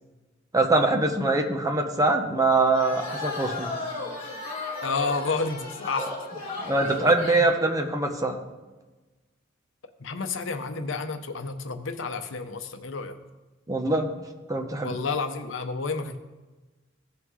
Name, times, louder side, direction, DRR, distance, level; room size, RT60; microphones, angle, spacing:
voice 1, 0.5-3.7 6.0-6.1 6.6-8.4 13.7-14.1 14.5-14.9, right 2 dB, 20° right, 4 dB, 0.9 m, -23 dB
sound 1, 2.7-7.6, left 3 dB, 30° left, 2.4 m, -35 dB
voice 2, 4.8-6.1 10.0-13.1 14.8-16.2, left 4 dB, 75° left, 7 dB, 0.8 m, -30 dB
16.0 x 5.8 x 3.2 m, 1.2 s
head